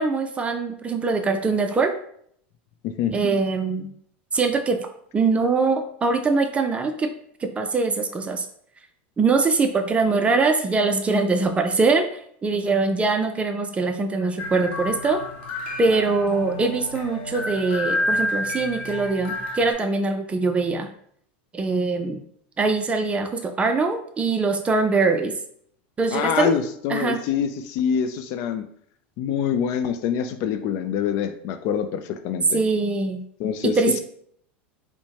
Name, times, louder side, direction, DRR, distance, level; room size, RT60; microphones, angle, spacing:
voice 1, 0.0-1.9 3.1-3.9 4.3-4.9 5.1-7.1 7.4-8.5 9.2-15.2 15.8-20.9 21.5-22.2 22.6-25.3 26.0-26.5 26.9-27.2 32.5-33.2 33.6-34.0, right 3 dB, 20° right, 6 dB, 0.4 m, -22 dB
sound 1, 14.4-19.7, left 1 dB, 75° left, 0.8 m, -29 dB
voice 2, 26.1-28.6 29.2-32.6 33.4-33.8, left 8 dB, 55° left, 9 dB, 0.4 m, -25 dB
4.4 x 2.1 x 2.9 m, 0.66 s
hypercardioid pair, 105°, 6 cm